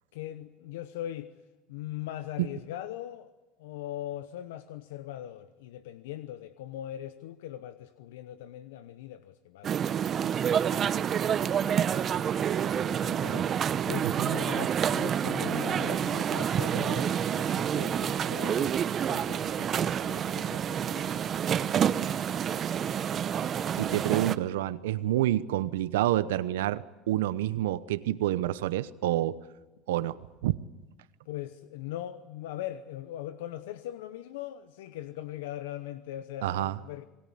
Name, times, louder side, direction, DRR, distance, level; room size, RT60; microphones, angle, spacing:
voice 1, 0.1-1.3 1.7-3.3 3.6-9.7 10.1-13.6 13.9-18.8 19.1-23.2 23.9-24.0 31.3-37.0, left 13 dB, 85° left, 12 dB, 0.9 m, -41 dB
sound 1, 9.6-24.4, right 8 dB, 40° right, 0.9 m, -28 dB
voice 2, 23.8-29.4 29.9-30.2 30.4-30.6 36.4-36.8, right 14 dB, 85° right, 15 dB, 0.9 m, -28 dB
27.5 x 20.0 x 8.6 m, 1.1 s
supercardioid pair, 100°, 0 cm